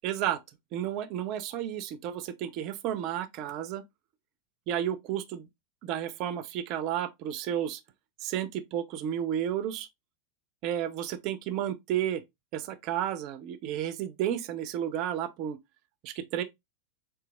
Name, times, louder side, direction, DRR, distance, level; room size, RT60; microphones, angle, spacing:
voice 1, 0.0-0.4 0.7-3.8 4.7-5.5 5.8-7.8 8.2-9.9 10.6-12.2 12.5-15.6 16.0-16.4, right 10 dB, 40° right, 0.4 m, -32 dB
3.9 x 2.4 x 2.4 m
figure-of-eight pair, 90°, 0 cm